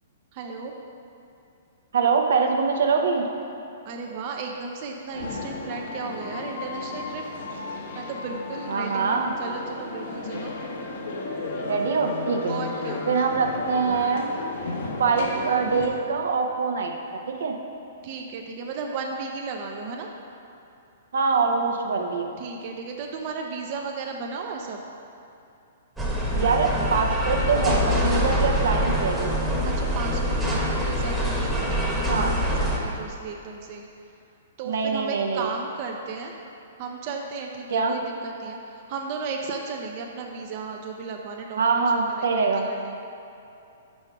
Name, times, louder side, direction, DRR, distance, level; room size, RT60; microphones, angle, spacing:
voice 1, 0.3-0.7 3.8-7.2 7.9-10.5 12.5-13.1 18.0-20.1 22.4-24.8 29.6-33.9 34.6-36.4 36.8-42.3 42.5-43.0, right 4 dB, 40° right, 1 dB, 0.5 m, -35 dB
voice 2, 1.9-3.3 8.7-9.3 11.7-12.5 13.1-14.3 15.0-16.9 17.4-17.6 21.1-22.2 26.3-29.3 32.1-32.3 34.7-35.5 37.7-37.9 41.6-42.7, right 5 dB, 80° right, 3 dB, 0.7 m, -23 dB
sound 1, 5.1-15.9, left 3 dB, 65° left, 0.9 m, -34 dB
sound 2, 26.0-32.8, equal, 5° right, 1.0 m, -25 dB
5.7 x 5.4 x 4.6 m, 2.7 s
hypercardioid pair, 145°, 0 cm